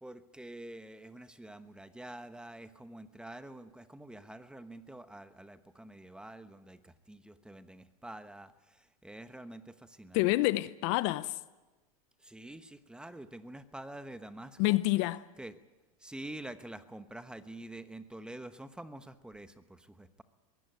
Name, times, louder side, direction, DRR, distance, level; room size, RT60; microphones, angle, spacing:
voice 1, 0.0-10.2 12.2-14.8 15.4-15.6 16.0-20.2, right 1 dB, 5° right, 1.1 m, -47 dB
voice 2, 10.1-11.3 14.6-15.2, left 19 dB, 60° left, 0.9 m, -27 dB
22.0 x 16.5 x 9.4 m
hypercardioid pair, 115°, 18 cm